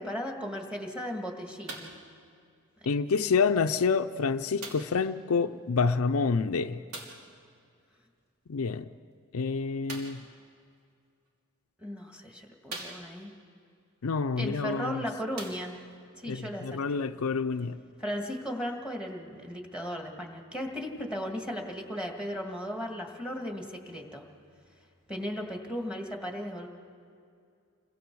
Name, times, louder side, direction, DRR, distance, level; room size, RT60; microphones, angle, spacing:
voice 1, 0.0-1.9 2.8-2.9 11.8-13.3 14.4-15.8 16.2-17.0 18.0-24.3 25.1-26.7, equal, 5° right, 2 dB, 1.9 m, -36 dB
sound 1, 1.7-2.1 3.0-3.1 4.6-5.0 6.9-7.3 9.8-10.3 11.3-11.4 12.0-12.1 12.7-13.4 14.6-14.7 15.3-16.0 16.8-16.9, right 2 dB, 85° right, 3.2 m, -42 dB
voice 2, 2.9-6.8 8.5-8.8 9.3-10.2 14.0-15.0 16.3-17.8, left 5 dB, 70° left, 9 dB, 0.5 m, -28 dB
29.0 x 23.0 x 4.7 m, 2.4 s
head